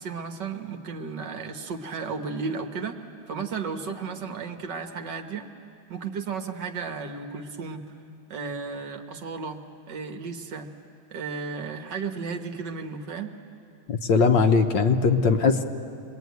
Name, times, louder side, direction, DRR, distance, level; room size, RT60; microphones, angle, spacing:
voice 1, 0.0-5.5 5.9-7.9 8.3-9.6 9.9-10.7 11.1-13.3, right 5 dB, 60° right, 6 dB, 1.7 m, -34 dB
voice 2, 13.9-15.6, left 5 dB, 65° left, 5 dB, 1.5 m, -20 dB
26.0 x 21.0 x 9.4 m, 2.5 s
omnidirectional pair, 2.3 m